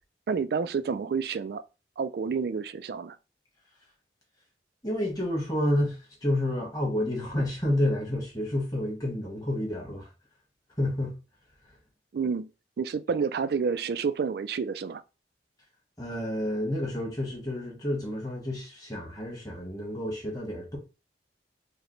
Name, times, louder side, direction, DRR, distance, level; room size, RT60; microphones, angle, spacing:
voice 1, 0.3-1.6 2.0-3.2 12.1-12.5 12.8-15.0, right 5 dB, 60° right, 0.3 m, -29 dB
voice 2, 4.8-10.1 10.8-11.1 16.0-20.8, left 1 dB, 20° left, 1.4 m, -29 dB
4.8 x 2.1 x 3.1 m
head